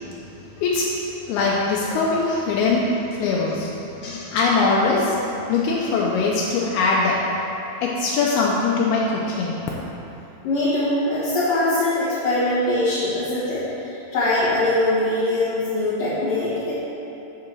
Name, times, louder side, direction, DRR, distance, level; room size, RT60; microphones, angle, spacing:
voice 1, 1.3-2.8 3.1-3.7 4.0-5.2 5.5-7.2 7.8-9.6, left 4 dB, 90° left, -4 dB, 2.2 m, -21 dB
voice 2, 10.4-16.7, left 1 dB, 65° left, -11 dB, 2.5 m, -22 dB
8.9 x 3.7 x 6.1 m, 2.9 s
omnidirectional pair, 5.2 m